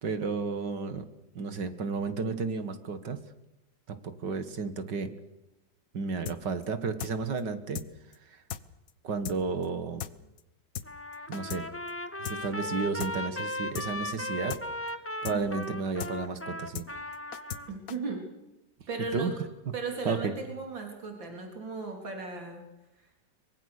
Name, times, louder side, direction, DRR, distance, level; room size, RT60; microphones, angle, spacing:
voice 1, 0.0-1.0 1.4-3.2 3.9-5.1 5.9-7.8 9.0-10.1 11.3-11.7 12.2-14.6 15.2-16.9 19.1-19.3 20.1-20.3, right 4 dB, 65° right, 10 dB, 2.4 m, -32 dB
sound 1, 6.3-6.4 6.6-6.7 7.0-7.1 7.4-7.5 7.7-7.9 8.1-8.2 8.5-8.6 8.9-9.0 9.2-9.4 9.6-9.7 10.0-10.1 10.4-10.5 10.7-10.9 11.1-11.6 11.9-12.0 12.2-12.4 12.6-12.7 13.0-13.1 13.4-13.5 13.7-13.9 14.1-14.2 14.5-14.6 14.9-15.0 15.2-15.4 15.6-15.7 16.0-16.1 16.4-16.5 16.7-16.9 17.1-17.6 17.9-18.0, left 10 dB, 55° left, 1.3 m, -37 dB
Trumpet, 10.9-17.7, left 1 dB, 10° left, 1.4 m, -37 dB
voice 2, 17.7-18.2 18.9-19.4 19.7-22.7 23.0-23.1, right 4 dB, 85° right, 2 dB, 4.5 m, -36 dB
24.0 x 23.0 x 6.7 m, 0.95 s
omnidirectional pair, 2.0 m